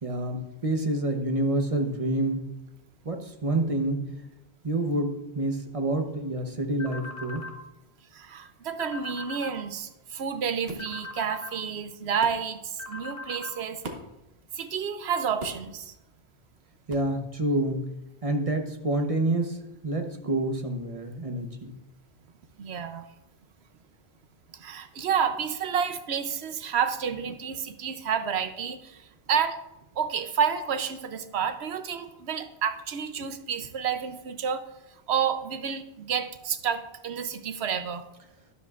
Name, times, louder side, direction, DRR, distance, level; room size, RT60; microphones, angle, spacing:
voice 1, 0.0-2.5 3.0-4.1 4.6-7.4 16.9-17.9 18.2-19.6 19.8-21.8, right 1 dB, 35° right, 5 dB, 1.0 m, -28 dB
sound 1, 6.8-7.6 8.8-9.6 10.8-11.6 12.8-13.6, left 3 dB, 60° left, 1.4 m, -40 dB
voice 2, 8.1-13.8 14.5-15.9 22.6-23.1 24.5-29.6 30.0-34.7 35.1-38.0, right 7 dB, 90° right, 9 dB, 1.0 m, -30 dB
sound 2, 10.7-10.9 12.2-12.4 13.8-14.2 15.4-15.7 16.9-17.1, right 3 dB, 70° right, 1.3 m, -39 dB
12.5 x 10.5 x 2.4 m, 0.94 s
omnidirectional pair, 1.1 m